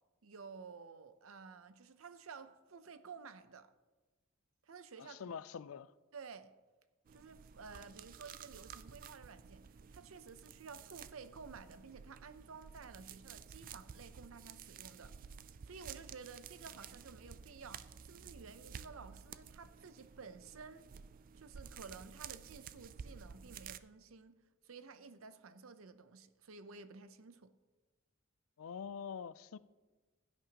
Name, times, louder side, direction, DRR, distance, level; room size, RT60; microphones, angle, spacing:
voice 1, 0.2-3.7 4.6-5.3 6.1-6.5 7.1-15.1 15.6-20.9 21.3-24.3 24.6-27.5, right 5 dB, 80° right, 0.6 m, -53 dB
voice 2, 5.0-5.9 28.6-29.6, left 6 dB, 85° left, 0.4 m, -45 dB
sound 1, 7.1-23.8, right 7 dB, 40° right, 0.3 m, -53 dB
16.0 x 9.1 x 2.9 m
head